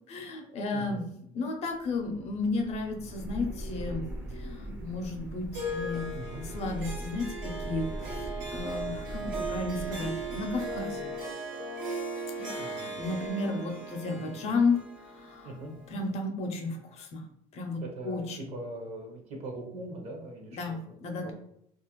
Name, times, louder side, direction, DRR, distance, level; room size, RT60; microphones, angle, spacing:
voice 1, 0.1-1.0 1.3-4.0 4.4-6.1 6.5-11.1 12.4-14.8 15.1-15.5 15.9-17.2 17.5-18.5 20.6-21.3, left 3 dB, 45° left, 3 dB, 0.5 m, -33 dB
voice 2, 0.7-1.1 6.1-6.4 12.6-13.0 14.2-14.5 15.4-15.7 17.8-20.8 21.2-21.3, right 2 dB, 50° right, 1 dB, 0.7 m, -41 dB
sound 1, 1.6-11.2, right 1 dB, 10° right, 0.4 m, -41 dB
Harp, 5.5-16.1, right 2 dB, 85° right, 0.7 m, -38 dB
2.4 x 2.1 x 2.9 m, 0.72 s
cardioid pair, 145°, 14 cm